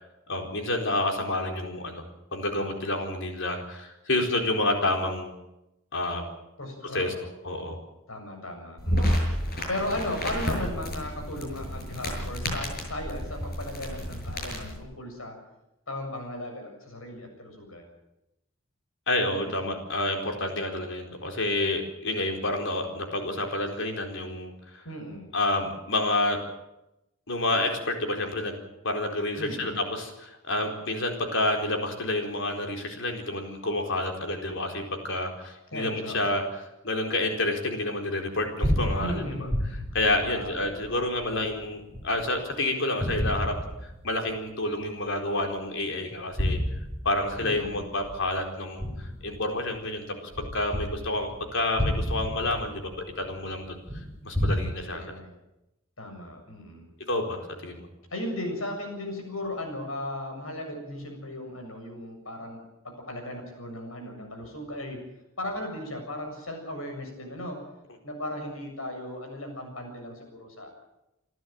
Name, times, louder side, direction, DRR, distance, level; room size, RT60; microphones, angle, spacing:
voice 1, 0.3-2.0 2.3-5.3 5.9-6.2 6.9-7.1 7.4-7.8 19.1-24.8 25.3-26.4 27.3-28.6 28.8-36.4 36.8-39.2 39.9-43.6 44.0-46.6 47.0-50.1 50.4-52.9 53.2-55.1 57.1-57.9, left 2 dB, 65° left, 3 dB, 4.4 m, -29 dB
voice 2, 6.6-7.3 8.1-9.2 9.7-15.4 15.9-17.9 19.4-19.7 24.8-25.3 29.4-29.9 35.7-36.4 39.0-39.7 40.2-40.6 47.4-47.9 54.8-55.3 56.0-56.9 58.1-65.0 65.4-67.6 68.0-70.7, left 1 dB, 85° left, 3 dB, 7.4 m, -36 dB
sound 1, 8.8-14.8, equal, 50° left, 7.3 m, -31 dB
sound 2, 38.4-42.5 43.0-44.4 44.8-44.9 46.1-49.8 50.3-54.6, equal, 15° left, 4.7 m, -31 dB
27.5 x 12.5 x 9.0 m, 0.90 s
head